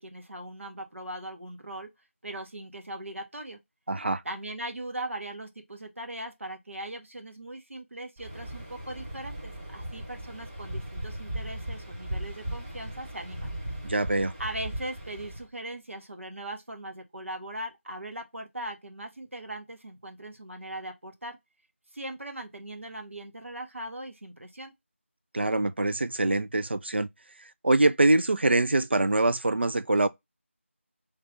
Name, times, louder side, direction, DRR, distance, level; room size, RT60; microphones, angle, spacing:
voice 1, 0.0-1.9 2.2-3.6 4.2-13.5 14.4-21.4 21.9-24.7, right 1 dB, 70° right, 1.0 m, -39 dB
voice 2, 3.9-4.2 13.8-14.3 25.3-27.1 27.6-30.1, right 2 dB, 55° right, 0.3 m, -24 dB
Waves surf, 8.2-15.5, right 1 dB, 25° right, 1.0 m, -38 dB
3.2 x 2.4 x 3.2 m
figure-of-eight pair, 170°, 7 cm